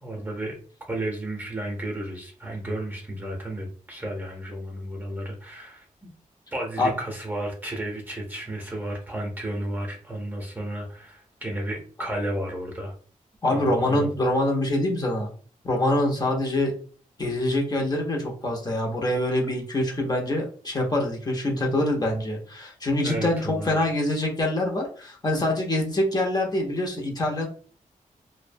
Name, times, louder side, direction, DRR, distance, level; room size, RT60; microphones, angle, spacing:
voice 1, 0.0-0.5 0.9-5.9 6.5-12.9 13.5-14.1 23.0-23.9, right 1 dB, 15° right, 0 dB, 0.7 m, -32 dB
voice 2, 13.4-15.3 15.6-16.7 17.2-27.5, left 1 dB, 30° left, 0 dB, 0.6 m, -25 dB
2.5 x 2.1 x 2.6 m, 0.43 s
wide cardioid pair, 135°, 14 cm